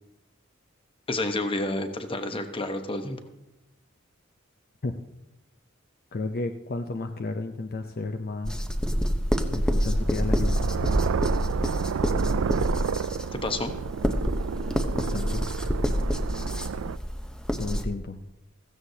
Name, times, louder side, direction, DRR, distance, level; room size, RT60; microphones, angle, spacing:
voice 1, 1.1-3.2 13.3-13.7, left 2 dB, 25° left, 7 dB, 1.0 m, -29 dB
voice 2, 6.1-8.6 9.5-10.7 14.9-15.4 17.6-18.2, left 3 dB, 50° left, 6 dB, 0.6 m, -32 dB
sound 1, 8.4-17.8, equal, 5° left, 0.7 m, -27 dB
sound 2, 9.8-17.0, right 6 dB, 85° right, 0.4 m, -31 dB
16.0 x 14.5 x 2.8 m, 0.89 s
head